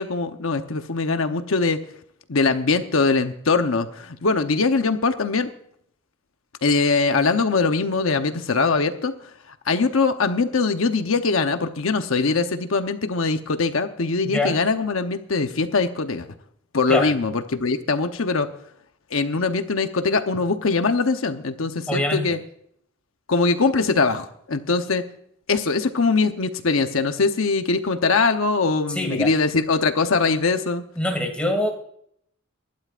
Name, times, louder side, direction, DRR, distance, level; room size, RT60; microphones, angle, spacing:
voice 1, 0.0-1.8 2.3-5.5 6.6-9.1 9.7-16.3 16.7-18.5 19.1-22.4 23.3-25.0 25.5-30.8, left 4 dB, 75° left, 8 dB, 0.9 m, -22 dB
voice 2, 21.9-22.2 28.9-29.3 31.0-31.7, left 1 dB, 5° left, 3 dB, 2.3 m, -24 dB
25.0 x 12.0 x 2.5 m, 0.68 s
head